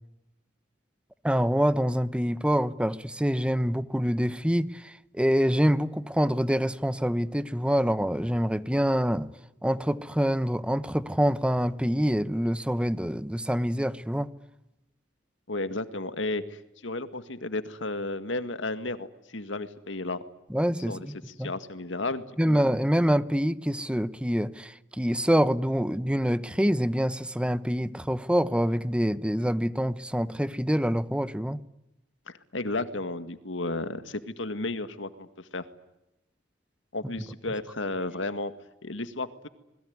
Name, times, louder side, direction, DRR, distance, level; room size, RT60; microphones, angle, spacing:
voice 1, 1.2-9.3 9.6-14.3 20.5-21.5 22.4-31.6, equal, 5° right, 0.9 m, -26 dB
voice 2, 15.5-20.2 20.9-22.6 32.3-35.6 36.9-38.5 38.8-39.5, left 2 dB, 85° left, 2.0 m, -33 dB
27.0 x 21.0 x 9.6 m
head